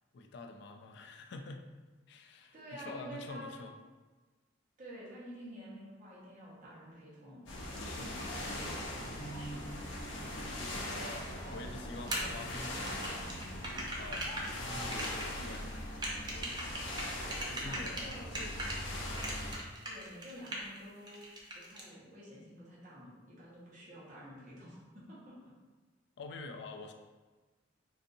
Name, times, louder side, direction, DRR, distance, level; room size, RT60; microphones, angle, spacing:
voice 1, 0.1-1.6 2.1-3.7 7.8-8.5 10.5-11.0 11.5-13.2 13.9-14.5 14.8-16.7 17.5-18.8 26.2-26.9, left 3 dB, 65° left, 4 dB, 0.4 m, -48 dB
voice 2, 2.5-3.6 4.8-9.6 12.0-12.1 17.6-18.3 19.8-25.4, equal, 45° right, -7 dB, 1.1 m, -50 dB
sound 1, 7.5-19.6, left 1 dB, 85° left, 0.8 m, -40 dB
sound 2, 12.1-18.8 19.2-20.8 21.1-21.8, right 1 dB, 25° right, 0.5 m, -39 dB
3.9 x 2.6 x 2.6 m, 1.3 s
head